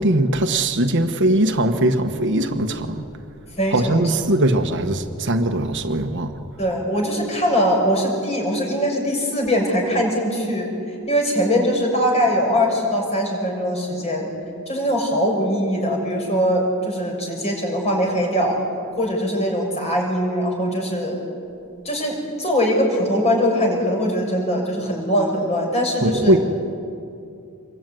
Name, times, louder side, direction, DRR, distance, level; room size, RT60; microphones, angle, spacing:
voice 1, 0.0-3.0 3.7-6.4 26.0-26.4, right 1 dB, 55° right, 1.4 m, -20 dB
voice 2, 3.6-4.0 6.6-14.3 14.7-18.6 18.9-21.2 21.8-26.4, equal, 30° left, 6.3 m, -21 dB
26.5 x 22.5 x 9.3 m
head